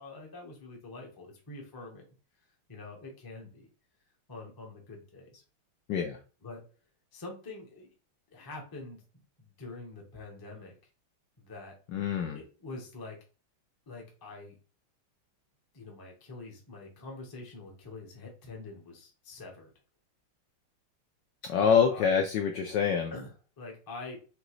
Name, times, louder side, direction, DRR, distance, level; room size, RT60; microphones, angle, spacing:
voice 1, 0.0-2.0 2.7-3.7 4.3-5.4 6.4-6.6 7.1-7.9 8.3-9.0 9.4-10.8 11.4-11.8 12.3-13.2 13.9-14.5 15.7-19.7 21.6-22.2 23.1-24.2, left 3 dB, 20° left, 1 dB, 0.5 m, -45 dB
voice 2, 11.9-12.4 21.4-23.1, left 7 dB, 75° left, 4 dB, 1.0 m, -26 dB
5.1 x 2.9 x 3.0 m, 0.35 s
omnidirectional pair, 2.4 m